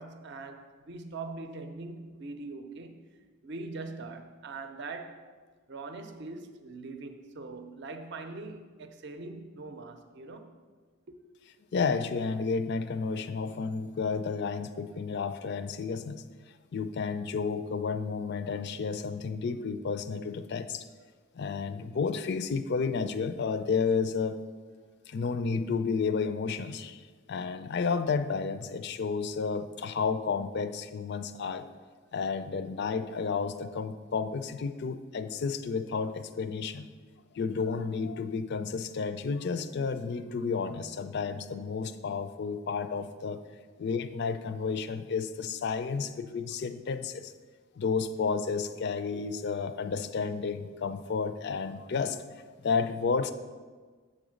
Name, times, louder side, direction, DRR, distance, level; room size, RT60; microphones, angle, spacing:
voice 1, 0.0-3.0 3.4-5.2 5.7-10.6 11.1-11.2, right 3 dB, 55° right, 0.5 m, -42 dB
voice 2, 11.7-16.2 16.7-20.9 21.4-24.4 25.1-27.0 27.3-31.7 32.1-36.9 37.3-43.4 43.8-47.3 47.8-52.2 52.6-53.3, left 5 dB, 55° left, 0.4 m, -31 dB
7.4 x 3.9 x 6.3 m
head